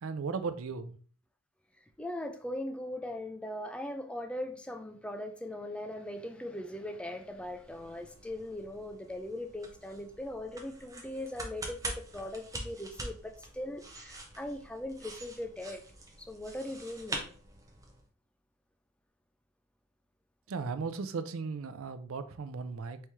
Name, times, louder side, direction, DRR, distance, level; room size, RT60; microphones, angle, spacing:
voice 1, 0.0-1.0 20.5-23.0, right 4 dB, 70° right, 0.5 m, -36 dB
voice 2, 1.8-15.8 16.2-17.3, left 1 dB, 5° left, 0.4 m, -40 dB
sound 1, 7.3-18.0, right 2 dB, 15° right, 0.8 m, -45 dB
4.4 x 3.1 x 3.4 m
head